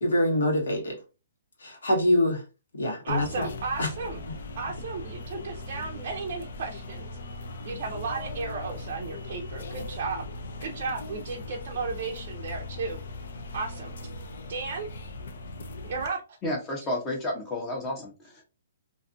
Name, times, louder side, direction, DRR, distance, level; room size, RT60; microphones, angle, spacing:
voice 1, 0.0-1.0 1.6-2.4 2.8-3.5 3.8-3.9, left 1 dB, 90° left, 1 dB, 1.3 m, -24 dB
voice 2, 3.0-4.2 4.5-7.0 7.6-10.3 10.6-13.0 13.5-13.9 14.5-14.9 15.8-16.4, right 4 dB, 40° right, -1 dB, 0.5 m, -34 dB
sound 1, 3.1-16.1, left 2 dB, 60° left, 0.4 m, -39 dB
voice 3, 16.4-18.4, left 1 dB, 15° left, 0 dB, 0.6 m, -31 dB
2.5 x 2.4 x 2.5 m, 0.30 s
hypercardioid pair, 175°, 0 cm